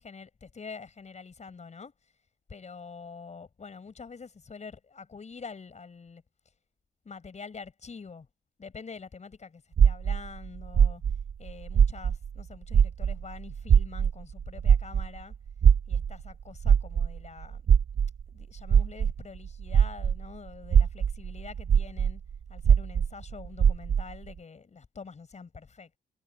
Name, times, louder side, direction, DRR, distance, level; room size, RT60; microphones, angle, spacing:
voice 1, 0.0-1.9 2.5-6.2 7.0-8.3 8.6-11.0 11.4-15.3 15.9-17.7 18.3-22.2 22.5-26.0, left 5 dB, 35° left, 6.2 m, -46 dB
sound 1, 9.8-12.4 12.7-20.3 20.6-24.2, right 7 dB, 50° right, 1.1 m, -22 dB
cardioid pair, 90°, 20 cm